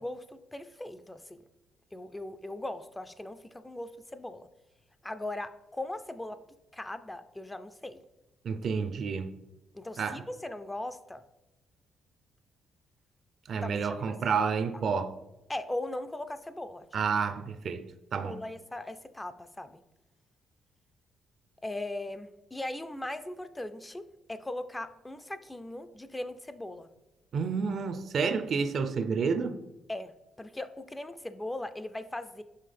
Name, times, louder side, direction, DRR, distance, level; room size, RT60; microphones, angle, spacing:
voice 1, 0.0-1.4 1.9-4.5 5.0-6.4 6.7-8.0 9.7-11.2 13.6-13.9 14.3-14.4 15.5-16.9 18.2-19.8 21.6-26.9 29.9-32.4, left 1 dB, 10° left, 0.3 m, -39 dB
voice 2, 8.4-9.3 10.0-10.2 13.5-15.2 16.9-17.8 18.1-18.4 27.3-29.6, right 5 dB, 60° right, 0.4 m, -30 dB
5.5 x 5.2 x 3.3 m
cardioid pair, 90°, 0 cm